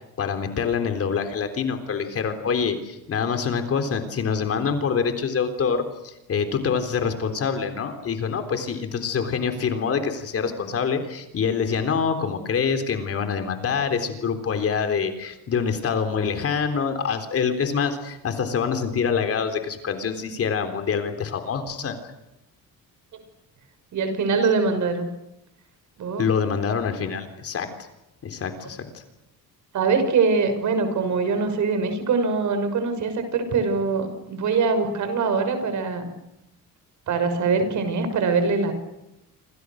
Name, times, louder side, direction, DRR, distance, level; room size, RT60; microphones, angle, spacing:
voice 1, 0.2-22.0 26.2-27.7 28.2-28.9, left 6 dB, 40° left, 7 dB, 3.8 m, -25 dB
voice 2, 23.9-25.1 26.0-26.3 29.7-36.1 37.1-38.7, right 4 dB, 55° right, 8 dB, 6.1 m, -23 dB
27.5 x 27.5 x 6.6 m, 0.90 s
cardioid pair, 160°, 35 cm